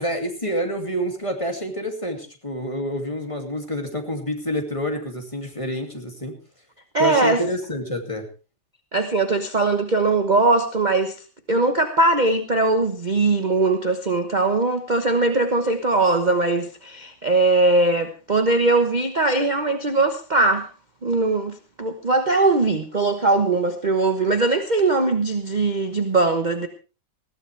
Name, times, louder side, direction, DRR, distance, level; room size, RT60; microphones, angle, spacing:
voice 1, 0.0-6.4 7.0-8.3, equal, 20° left, 4 dB, 2.5 m, -28 dB
voice 2, 6.9-7.4 8.9-20.7 21.0-26.7, right 3 dB, 30° right, 7 dB, 1.2 m, -20 dB
20.5 x 15.0 x 3.4 m, 0.32 s
omnidirectional pair, 1.8 m